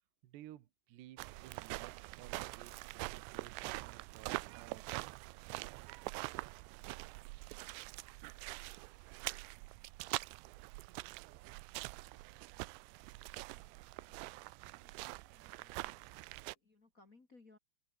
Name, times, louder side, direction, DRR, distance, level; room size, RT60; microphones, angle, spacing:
voice 1, 0.2-5.3, right 13 dB, 65° right, 3.3 m, -56 dB
sound 1, 1.2-16.5, right 23 dB, 85° right, 2.5 m, -45 dB
voice 2, 14.7-16.1 16.6-17.6, left 3 dB, 40° left, 1.2 m, -65 dB
open air
omnidirectional pair, 5.7 m